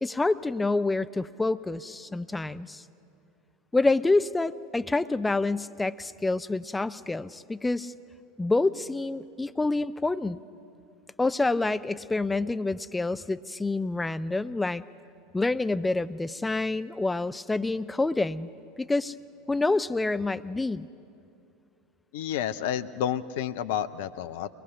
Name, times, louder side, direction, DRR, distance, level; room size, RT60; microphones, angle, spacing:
voice 1, 0.0-2.8 3.7-7.9 8.4-10.4 11.2-14.8 15.3-18.5 18.8-19.1 19.5-20.9, left 2 dB, 10° left, 13 dB, 0.5 m, -27 dB
voice 2, 22.1-24.5, left 10 dB, 60° left, 12 dB, 0.5 m, -30 dB
22.5 x 21.0 x 5.7 m, 2.6 s
figure-of-eight pair, 75°, 0 cm